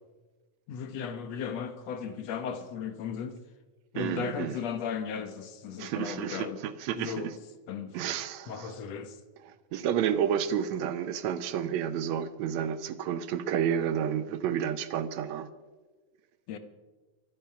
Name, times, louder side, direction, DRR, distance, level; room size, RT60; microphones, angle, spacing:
voice 1, 0.7-3.4 3.9-6.6 6.9-7.3 7.7-8.1 8.5-9.2 16.5-16.6, left 7 dB, 65° left, 2.1 m, -36 dB
voice 2, 4.0-4.6 5.8-7.3 7.9-8.7 9.5-15.5, right 9 dB, 75° right, 2.0 m, -30 dB
24.0 x 10.5 x 5.7 m
omnidirectional pair, 3.4 m